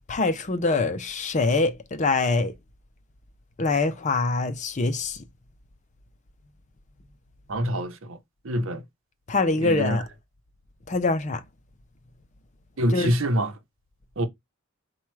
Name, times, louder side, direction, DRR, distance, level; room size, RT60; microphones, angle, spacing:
voice 1, 0.1-2.5 3.6-5.2 9.3-10.0 10.9-11.4 12.9-13.1, left 3 dB, 35° left, 0.5 m, -24 dB
voice 2, 7.5-8.2 8.4-8.8 9.6-10.0 12.8-13.5 14.2-14.3, equal, 70° right, 0.8 m, -25 dB
4.3 x 2.3 x 4.6 m
head